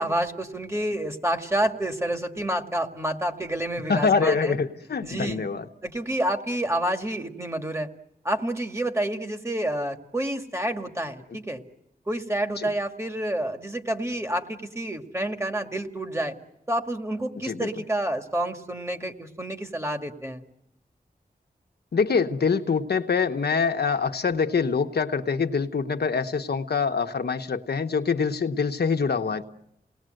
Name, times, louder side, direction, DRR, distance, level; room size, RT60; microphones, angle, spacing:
voice 1, 0.0-4.6 5.0-5.4 5.8-7.9 8.2-11.6 12.1-16.3 16.7-20.4, right 1 dB, 15° right, 5 dB, 2.1 m, -28 dB
voice 2, 3.9-5.7 12.6-12.7 17.4-17.7 21.9-29.4, left 5 dB, 85° left, 6 dB, 1.2 m, -25 dB
29.5 x 19.5 x 7.8 m, 0.83 s
wide cardioid pair, 70°, 16 cm